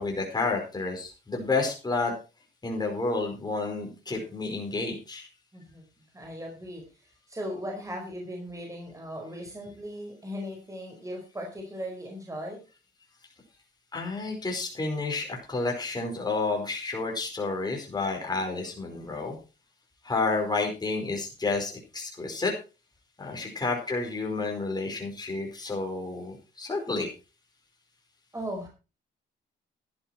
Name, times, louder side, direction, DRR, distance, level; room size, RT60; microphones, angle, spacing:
voice 1, 0.0-2.1 2.6-5.3 13.9-19.4 20.0-22.5 23.2-27.1, left 3 dB, 20° left, 1 dB, 4.8 m, -30 dB
voice 2, 5.5-5.8 6.1-6.8 7.3-12.6 23.2-23.5 28.3-28.7, equal, 15° right, 1 dB, 4.8 m, -38 dB
12.5 x 10.5 x 4.3 m, 0.32 s
cardioid pair, 90°, 20 cm